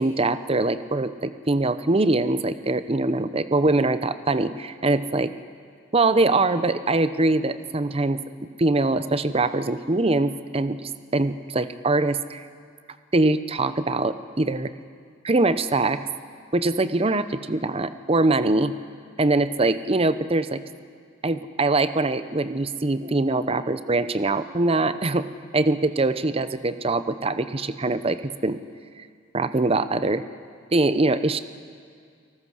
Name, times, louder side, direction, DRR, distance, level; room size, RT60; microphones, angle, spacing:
voice 1, 0.0-5.3 5.9-12.4 13.1-14.7 15.2-16.0 16.5-18.7 19.2-20.6 21.2-25.3 25.5-28.6 29.3-30.2 30.7-31.4, right 2 dB, 30° right, 12 dB, 0.7 m, -23 dB
30.0 x 19.5 x 6.3 m, 2.2 s
head